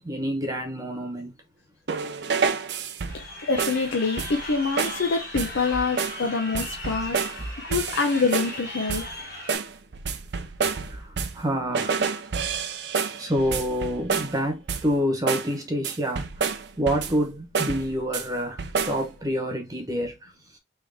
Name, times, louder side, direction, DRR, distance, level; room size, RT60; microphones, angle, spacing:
voice 1, 0.0-1.3 10.9-12.2 13.2-16.2 16.8-18.6 18.9-20.1, equal, 20° right, 1.0 m, -27 dB
sound 1, 1.9-3.3 3.6-3.9 4.2-4.5 4.8-5.0 5.4-5.6 6.0-6.2 6.5-7.4 7.7-8.6 8.9-9.2 9.5-11.5 11.7-14.4 14.7-15.0 15.3-15.5 15.8-17.2 17.5-18.3 18.6-19.0, right 5 dB, 65° right, 0.5 m, -29 dB
Crowd, 3.1-9.5, left 1 dB, 50° left, 1.9 m, -38 dB
voice 2, 3.5-7.2 7.7-9.0, left 4 dB, 85° left, 0.7 m, -25 dB
3.6 x 3.1 x 3.4 m
head